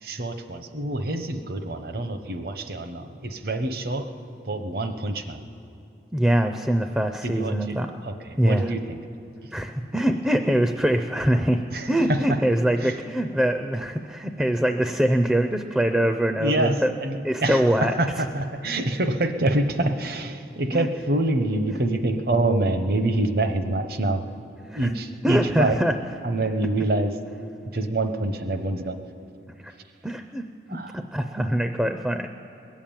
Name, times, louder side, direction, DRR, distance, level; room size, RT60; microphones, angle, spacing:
voice 1, 0.0-4.1 4.4-5.4 7.2-9.0 9.4-9.5 11.7-12.4 12.8-13.0 16.4-24.2 24.8-25.8 26.2-27.2 27.7-29.0 30.7-30.9, right 2 dB, 55° right, 8 dB, 0.8 m, -26 dB
voice 2, 6.1-7.9 8.4-8.6 9.5-11.6 11.9-16.9 17.2-18.0 20.7-20.9 24.7-24.9 25.2-25.9 29.6-29.7 30.0-32.3, right 1 dB, 5° right, 5 dB, 0.4 m, -23 dB
21.0 x 7.4 x 8.8 m, 2.6 s
head